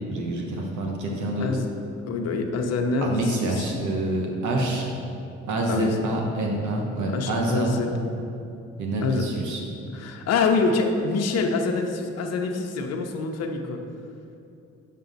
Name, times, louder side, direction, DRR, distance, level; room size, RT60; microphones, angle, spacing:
voice 1, 0.1-1.5 3.0-4.9 5.5-7.7 8.8-9.6, right 2 dB, 75° right, 0 dB, 1.0 m, -27 dB
voice 2, 2.1-3.7 5.7-6.1 7.1-8.0 9.0-9.2 9.9-13.8, left 4 dB, 55° left, 3 dB, 0.7 m, -25 dB
6.9 x 5.5 x 4.0 m, 2.7 s
cardioid pair, 90°, 30 cm